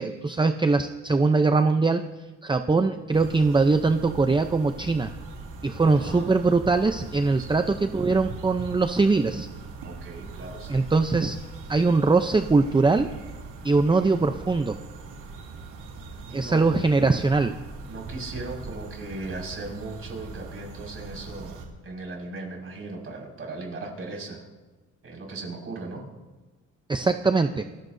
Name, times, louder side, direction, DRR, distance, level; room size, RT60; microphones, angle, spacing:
voice 1, 0.0-2.0 2.4-5.1 5.6-9.5 10.7-11.4 11.7-13.1 13.6-14.8 16.3-17.5 26.9-27.6, right 3 dB, 15° right, 8 dB, 0.7 m, -22 dB
sound 1, 3.1-21.7, right 3 dB, 85° right, 3.0 m, -41 dB
voice 2, 5.8-6.4 7.3-7.7 9.8-10.9 16.3-16.7 17.9-24.5 25.0-26.0, right 3 dB, 45° right, 0 dB, 5.7 m, -38 dB
28.5 x 15.5 x 2.7 m, 1.2 s
cardioid pair, 90°, 30 cm